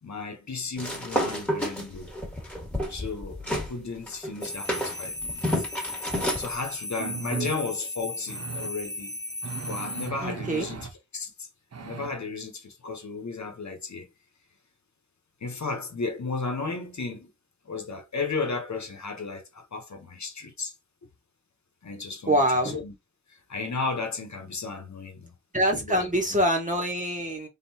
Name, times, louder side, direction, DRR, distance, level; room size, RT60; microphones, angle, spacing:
voice 1, 0.0-2.1 2.9-5.6 6.4-9.2 9.7-10.8 11.1-11.5 11.8-14.1 15.4-17.3 17.6-20.7 21.8-22.9 23.3-25.3 25.6-26.4, left 4 dB, 70° left, 1.0 m, -34 dB
sound 1, 0.8-3.7 4.1-6.5, equal, 5° left, 1.6 m, -30 dB
sound 2, 4.4-10.1, left 2 dB, 35° left, 0.9 m, -36 dB
sound 3, 6.2-6.3 7.0-7.6 8.3-8.7 9.4-10.9 11.7-12.1, right 7 dB, 60° right, 0.7 m, -37 dB
voice 2, 10.2-10.7 22.3-22.8 25.5-27.5, equal, 25° right, 1.5 m, -25 dB
3.7 x 3.6 x 2.8 m
wide cardioid pair, 60°, 30 cm